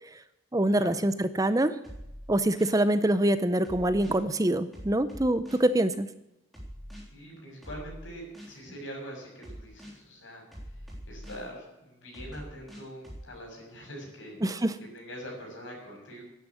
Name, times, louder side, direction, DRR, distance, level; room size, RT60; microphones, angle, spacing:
voice 1, 0.5-1.7 2.3-6.1 14.4-14.8, right 1 dB, 15° right, 12 dB, 0.6 m, -25 dB
sound 1, 1.8-2.8 3.6-4.2 4.7-5.7 6.5-7.0 7.6-8.6 9.4-10.0 10.5-11.5 12.1-13.2, equal, ahead, 3.4 m, -44 dB
voice 2, 7.1-10.4 11.1-14.4 14.9-16.2, equal, 75° left, 0 dB, 6.7 m, -43 dB
11.0 x 9.9 x 9.8 m, 0.89 s
head